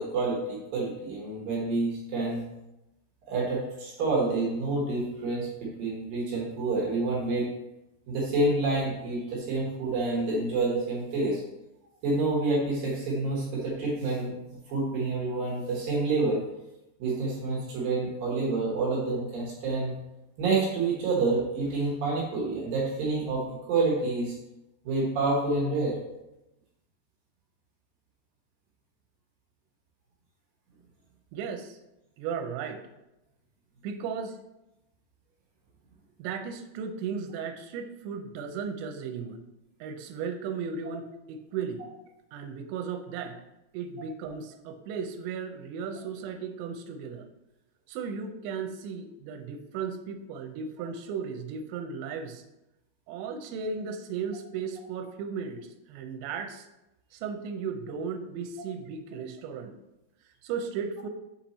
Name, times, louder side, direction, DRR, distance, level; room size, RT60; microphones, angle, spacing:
voice 1, 0.0-2.4 3.3-7.5 8.1-11.4 12.0-16.4 17.0-19.9 20.4-24.4 24.8-26.0, right 3 dB, 65° right, -4 dB, 2.5 m, -28 dB
voice 2, 31.3-31.8 32.2-32.8 33.8-34.4 36.2-39.4 39.8-41.9 42.3-43.4 43.7-47.3 47.9-52.4 53.1-56.7 57.1-59.8 60.4-61.1, right 6 dB, 85° right, 6 dB, 3.0 m, -35 dB
6.8 x 4.5 x 4.1 m, 0.92 s
omnidirectional pair, 5.3 m